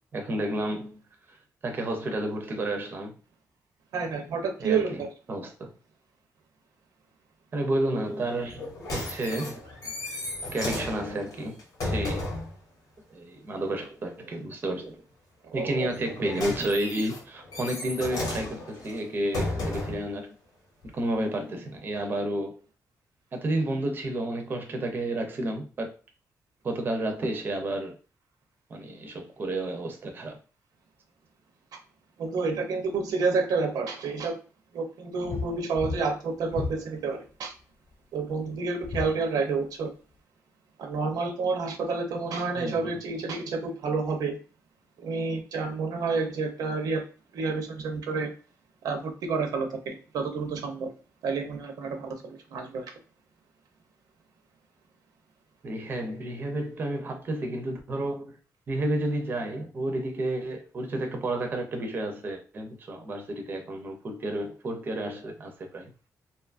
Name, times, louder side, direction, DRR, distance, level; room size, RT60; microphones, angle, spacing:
voice 1, 0.1-1.0 1.3-1.4 1.6-3.2 4.6-5.0 5.3-5.7 7.5-10.2 10.5-12.3 13.1-15.0 15.5-20.4 20.8-22.6 23.3-25.9 26.6-27.9 28.7-30.4 42.6-43.0 55.6-58.4 58.7-65.9, right 1 dB, 35° right, 0.4 m, -31 dB
voice 2, 3.9-5.1 15.5-15.9 32.2-34.4 34.7-37.5 38.1-39.9 40.8-44.4 45.0-47.0 47.3-48.3 48.8-50.9 51.2-52.9, right 4 dB, 90° right, 0.5 m, -29 dB
sound 1, 8.5-12.6 15.9-20.1 20.8-20.9, left 2 dB, 70° left, 0.8 m, -34 dB
sound 2, 35.3-35.5 35.8-36.1 36.5-36.8 38.8-39.1, left 4 dB, 35° left, 0.4 m, -32 dB
2.6 x 2.3 x 2.3 m
wide cardioid pair, 155°, 6 cm